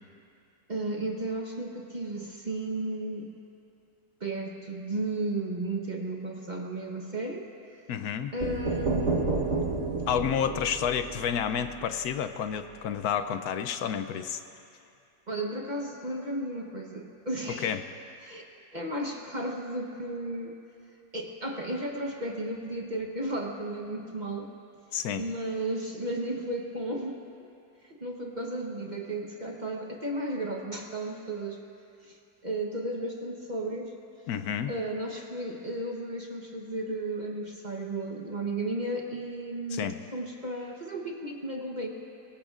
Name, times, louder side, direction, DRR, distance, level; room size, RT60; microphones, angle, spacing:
voice 1, 0.7-3.3 4.2-7.5 8.3-9.1 15.3-17.7 18.2-18.4 18.7-20.6 21.1-24.5 25.2-27.2 27.8-31.6 32.0-32.2 32.4-33.9 34.7-41.9, right 1 dB, 35° right, 1 dB, 1.0 m, -34 dB
voice 2, 7.9-8.3 10.1-14.4 17.6-17.8 24.9-25.2 34.3-34.7 39.7-39.9, left 8 dB, 75° left, 9 dB, 1.1 m, -30 dB
sound 1, 8.4-12.1, right 3 dB, 50° right, 1.4 m, -31 dB
23.5 x 20.5 x 2.5 m, 2.5 s
omnidirectional pair, 1.7 m